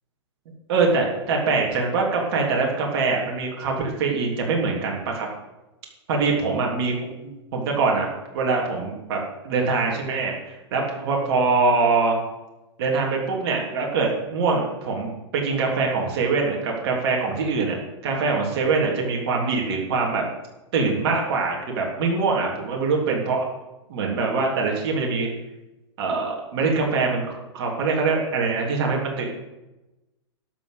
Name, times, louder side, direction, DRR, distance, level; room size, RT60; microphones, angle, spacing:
voice 1, 0.7-5.3 6.1-6.9 7.2-8.1 8.3-9.2 9.4-12.1 12.8-17.8 18.0-20.3 20.7-23.4 23.9-25.3 26.0-29.2, right 4 dB, 55° right, 0 dB, 3.3 m, -23 dB
12.0 x 6.4 x 8.1 m, 1.0 s
hypercardioid pair, 120°, 15 cm